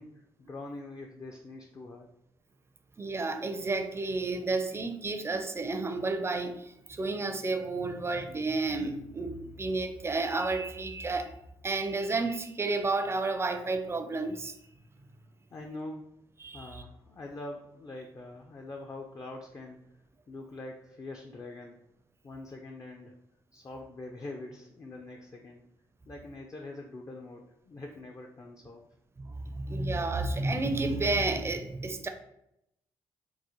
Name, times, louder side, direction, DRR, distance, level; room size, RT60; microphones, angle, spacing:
voice 1, 0.0-2.1 15.5-16.1 16.5-19.8 20.3-21.8 22.2-23.2 23.5-25.6 26.1-28.8, left 2 dB, 35° left, 2 dB, 0.4 m, -44 dB
voice 2, 3.0-11.3 11.6-14.5 16.4-16.8 29.2-32.1, right 3 dB, 25° right, 7 dB, 0.4 m, -31 dB
3.7 x 2.0 x 2.9 m, 0.81 s
supercardioid pair, 65°, 10 cm